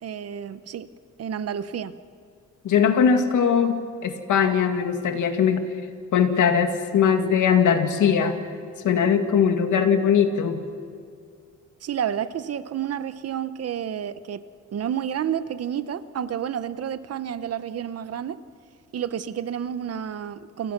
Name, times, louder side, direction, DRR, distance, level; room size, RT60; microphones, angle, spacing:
voice 1, 0.0-0.9 1.2-1.9 11.8-14.4 14.7-18.4 18.9-20.7, right 9 dB, 55° right, 13 dB, 1.0 m, -30 dB
voice 2, 2.6-5.6 6.1-8.4 8.8-10.6, left 7 dB, 80° left, 6 dB, 2.3 m, -20 dB
29.0 x 28.0 x 6.1 m, 2.3 s
wide cardioid pair, 170°, 30 cm